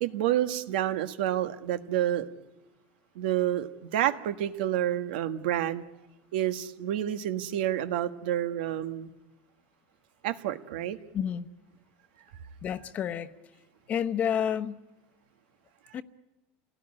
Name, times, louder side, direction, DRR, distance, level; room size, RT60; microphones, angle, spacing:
voice 1, 0.0-2.3 3.1-5.8 6.3-9.1 10.2-11.0, right 12 dB, 90° right, 9 dB, 1.5 m, -29 dB
voice 2, 11.1-11.5 12.6-13.3 13.9-14.8 15.9-16.0, left 8 dB, 30° left, 11 dB, 1.0 m, -29 dB
27.5 x 17.5 x 9.9 m, 1.1 s
supercardioid pair, 155°, 5 cm